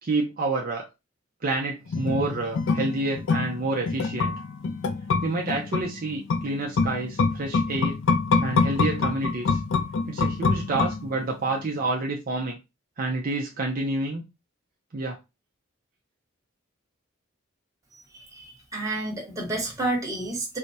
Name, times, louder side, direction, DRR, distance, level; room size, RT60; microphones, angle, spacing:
voice 1, 0.0-0.8 1.4-4.3 5.2-8.0 8.4-9.6 10.1-12.6 13.0-14.2 14.9-15.2, right 2 dB, 45° right, 0.6 m, -28 dB
sound 1, 1.9-11.4 11.7-11.8, left 4 dB, 65° left, 0.4 m, -26 dB
voice 2, 18.3-20.6, right 2 dB, 15° right, 1.2 m, -30 dB
4.5 x 2.2 x 2.6 m
head